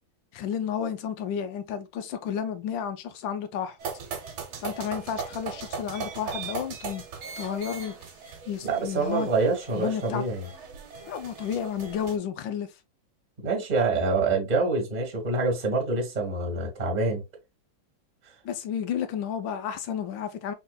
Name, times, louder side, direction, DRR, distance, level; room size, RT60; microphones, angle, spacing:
voice 1, 0.3-3.8 4.6-7.0 7.3-8.0 8.5-9.3 9.7-10.2 11.1-12.7 18.4-20.5, left 8 dB, 75° left, 1.3 m, -31 dB
sound 1, 3.8-12.2, right 5 dB, 80° right, 1.8 m, -39 dB
voice 2, 8.6-10.5 13.4-17.2, right 3 dB, 25° right, 1.3 m, -26 dB
4.4 x 3.6 x 2.3 m
omnidirectional pair, 2.2 m